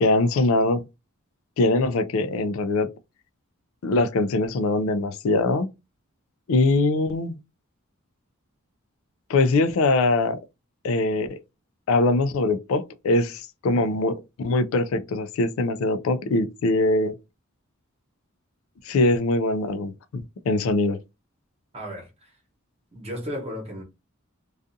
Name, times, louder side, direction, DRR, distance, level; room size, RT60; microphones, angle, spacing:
voice 1, 0.0-0.8 1.6-2.9 3.8-5.7 6.5-7.4 9.3-10.4 10.8-11.4 11.9-17.2 18.9-21.0, left 2 dB, 70° left, 0.3 m, -22 dB
voice 2, 21.7-22.4 22.9-23.8, equal, 30° right, 1.0 m, -34 dB
2.4 x 2.3 x 2.6 m
head